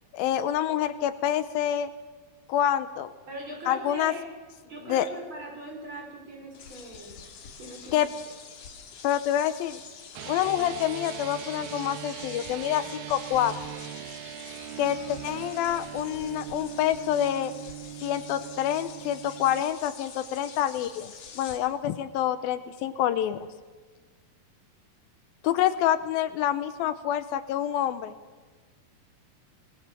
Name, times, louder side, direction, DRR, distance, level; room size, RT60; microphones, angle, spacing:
voice 1, 0.1-1.9 2.5-3.1 3.7-4.1 4.9-5.1 7.9-8.1 9.0-9.8 10.3-13.5 14.8-17.5 18.0-23.4 25.4-28.1, left 11 dB, 80° left, 12 dB, 2.5 m, -27 dB
voice 2, 3.3-4.3 4.6-7.2 7.6-8.1, right 1 dB, 30° right, 0 dB, 5.7 m, -41 dB
sound 1, 6.5-21.6, left 6 dB, 65° left, 3.4 m, -46 dB
sound 2, 10.1-19.6, right 12 dB, 75° right, 2.4 m, -40 dB
24.5 x 19.5 x 6.8 m, 1.4 s
omnidirectional pair, 4.3 m